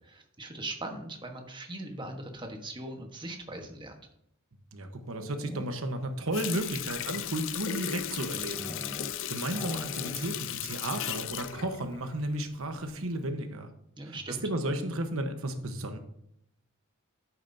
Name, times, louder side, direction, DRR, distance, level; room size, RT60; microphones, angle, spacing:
voice 1, 0.0-4.0 14.0-14.4, right 2 dB, 20° right, 3 dB, 1.3 m, -40 dB
voice 2, 4.7-8.7 9.3-13.7 14.1-16.0, right 1 dB, 70° right, 7 dB, 1.2 m, -33 dB
sound 1, 5.0-6.0 6.6-9.2 9.5-10.6 10.8-10.9 11.2-11.6, equal, 15° left, 0.8 m, -44 dB
Water tap faucet, 6.3-12.7 13.1-13.3, left 11 dB, 60° left, 0.5 m, -36 dB
10.5 x 8.8 x 2.8 m, 0.77 s
head